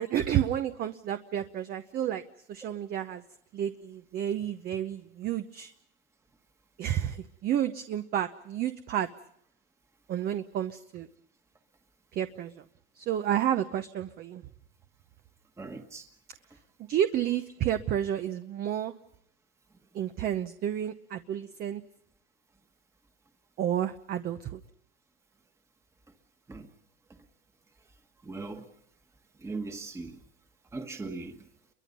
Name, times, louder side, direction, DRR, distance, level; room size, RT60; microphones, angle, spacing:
voice 1, 0.0-2.2 2.5-3.2 3.5-5.7 6.8-9.1 10.1-11.1 12.1-12.6 12.9-14.4 16.8-18.9 19.9-21.8 23.6-24.6, right 10 dB, 30° right, 10 dB, 0.9 m, -30 dB
voice 2, 15.6-16.1 26.5-26.7 28.2-28.7 29.4-30.2 30.7-31.4, right 3 dB, 10° right, 5 dB, 1.5 m, -39 dB
29.0 x 23.0 x 5.5 m, 0.70 s
supercardioid pair, 150°, 30 cm